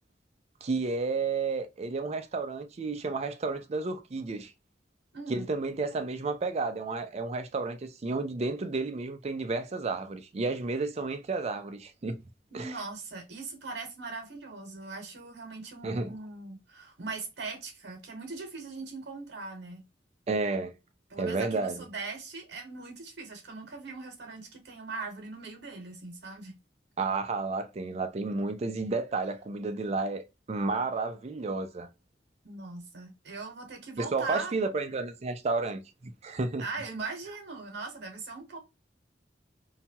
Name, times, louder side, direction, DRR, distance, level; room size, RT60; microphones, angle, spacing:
voice 1, 0.6-4.5 5.3-12.2 12.5-12.7 15.8-16.1 20.3-20.7 21.2-21.8 27.0-31.9 34.0-36.7, right 3 dB, 35° right, 0.4 m, -31 dB
voice 2, 5.1-5.5 12.5-19.8 21.1-26.5 32.4-34.6 36.6-38.6, right 3 dB, 65° right, 1.0 m, -40 dB
2.8 x 2.2 x 2.7 m
head